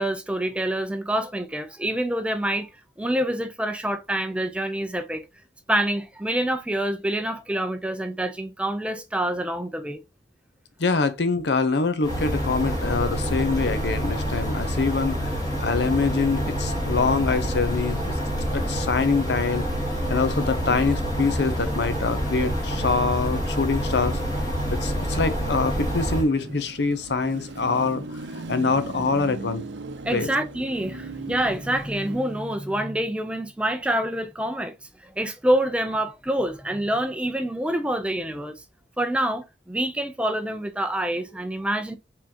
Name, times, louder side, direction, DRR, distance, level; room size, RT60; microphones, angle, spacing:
voice 1, 0.0-2.7 3.0-5.3 5.7-10.0 30.0-38.6 39.0-42.0, right 1 dB, 5° right, 0.4 m, -26 dB
voice 2, 10.8-18.2 18.5-19.6 20.1-24.2 24.7-29.6 30.1-30.3, left 4 dB, 70° left, 0.6 m, -25 dB
sound 1, 12.0-26.2, equal, 20° left, 1.8 m, -27 dB
Car passing by / Traffic noise roadway noise / Engine, 25.4-32.7, right 3 dB, 85° right, 0.6 m, -38 dB
4.5 x 3.7 x 2.8 m
head